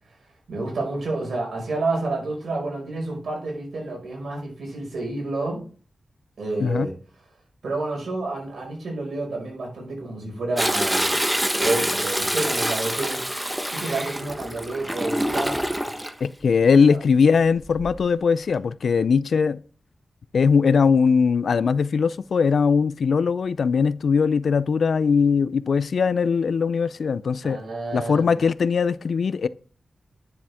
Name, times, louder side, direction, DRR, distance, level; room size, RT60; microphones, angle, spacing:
voice 1, 0.5-5.6 6.4-6.9 7.6-11.2 11.6-13.3 13.7-15.6 27.4-28.4, right 2 dB, 80° right, 5.4 m, -29 dB
Toilet flush, 10.6-16.1 17.6-18.1 18.5-18.6, equal, 10° right, 1.0 m, -26 dB
voice 2, 16.2-19.6 20.3-27.6 27.9-29.5, left 5 dB, 75° left, 0.4 m, -20 dB
10.0 x 7.1 x 3.6 m
wide cardioid pair, 80°, 0 cm